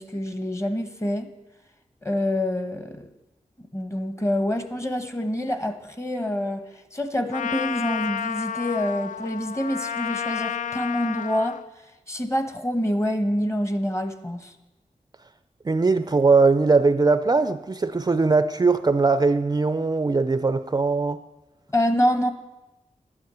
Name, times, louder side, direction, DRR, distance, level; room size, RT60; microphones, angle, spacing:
voice 1, 0.0-1.3 2.0-3.1 3.7-11.6 12.1-14.5 21.7-22.3, left 1 dB, 20° left, 8 dB, 1.1 m, -26 dB
Trumpet, 7.3-11.6, left 8 dB, 65° left, 0.4 m, -31 dB
voice 2, 15.6-21.2, right 4 dB, 30° right, 11 dB, 0.4 m, -20 dB
11.5 x 9.4 x 6.9 m, 1.0 s
wide cardioid pair, 100°, 14 cm